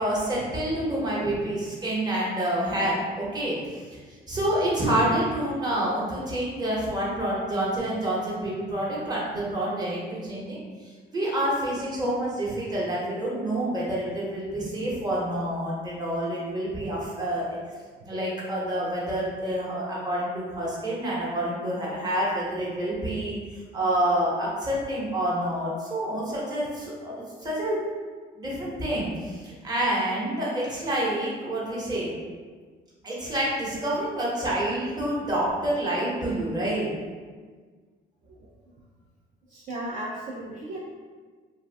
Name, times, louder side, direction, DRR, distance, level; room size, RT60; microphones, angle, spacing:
voice 1, 0.0-4.0 4.3-17.6 18.0-27.8 28.4-32.1 33.0-36.9, right 1 dB, 25° right, -6 dB, 0.9 m, -28 dB
voice 2, 38.2-38.7 39.5-40.8, right 1 dB, 50° right, -5 dB, 0.4 m, -36 dB
2.5 x 2.2 x 3.3 m, 1.5 s
cardioid pair, 110°, 17 cm